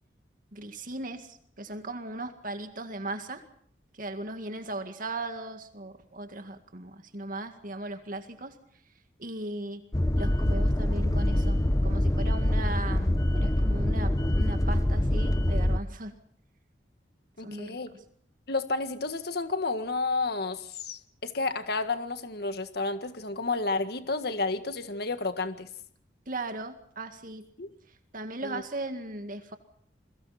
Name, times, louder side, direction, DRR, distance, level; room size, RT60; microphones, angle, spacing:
voice 1, 0.5-3.4 3.9-8.6 9.2-9.8 10.2-16.2 17.4-18.0 26.3-27.5 27.9-29.6, right 2 dB, 50° right, 7 dB, 2.0 m, -38 dB
sound 1, 9.9-15.8, left 1 dB, 20° left, 0.9 m, -25 dB
voice 2, 17.4-17.9 18.5-25.7 27.6-27.7 28.4-28.6, left 3 dB, 60° left, 9 dB, 1.7 m, -31 dB
29.5 x 22.5 x 4.3 m, 0.64 s
head